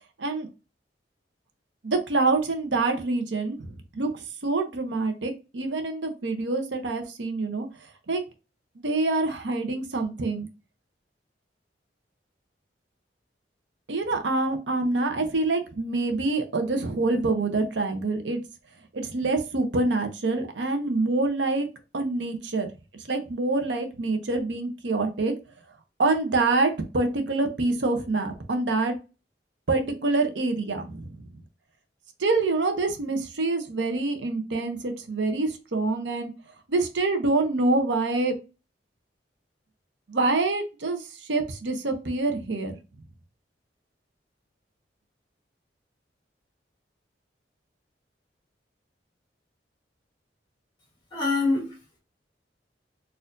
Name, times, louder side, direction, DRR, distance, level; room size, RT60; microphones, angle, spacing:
voice 1, 1.8-7.7 8.1-8.2 8.8-10.5 13.9-18.4 18.9-21.7 21.9-22.7 23.1-25.3 26.0-28.9 29.7-31.1 32.2-36.3 36.7-38.4 40.1-41.0 41.3-42.8, right 3 dB, 85° right, 0.7 m, -26 dB
voice 2, 51.1-52.0, left 3 dB, 25° left, 1.6 m, -26 dB
4.2 x 2.5 x 2.6 m
head